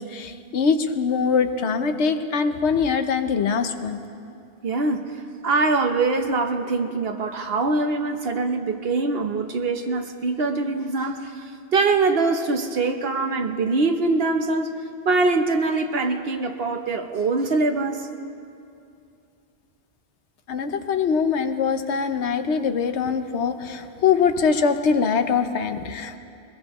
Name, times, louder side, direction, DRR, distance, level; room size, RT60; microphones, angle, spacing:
voice 1, 0.0-4.0 20.5-26.2, left 5 dB, 85° left, 8 dB, 1.1 m, -23 dB
voice 2, 4.6-5.1 5.4-14.8 15.0-18.1, right 3 dB, 65° right, 5 dB, 1.0 m, -23 dB
22.5 x 21.0 x 3.0 m, 2.6 s
omnidirectional pair, 1.1 m